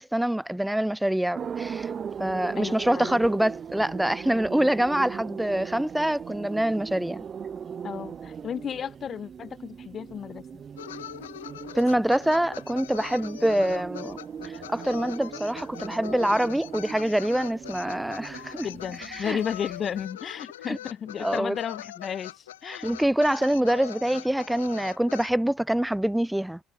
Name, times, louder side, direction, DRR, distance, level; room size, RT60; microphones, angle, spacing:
voice 1, 0.0-1.9 2.2-7.2 11.7-14.2 14.4-18.7 19.1-19.4 20.7-20.8 21.2-21.5 22.7-26.6, right 1 dB, 5° right, 1.2 m, -25 dB
sound 1, 1.3-20.0, right 7 dB, 40° right, 4.1 m, -39 dB
voice 2, 2.5-3.2 7.8-10.6 18.6-22.9, left 8 dB, 45° left, 1.6 m, -33 dB
Lu Xun Park Harmonica - Shanghai, 10.8-25.3, left 13 dB, 85° left, 3.9 m, -42 dB
hypercardioid pair, 60°, 0 cm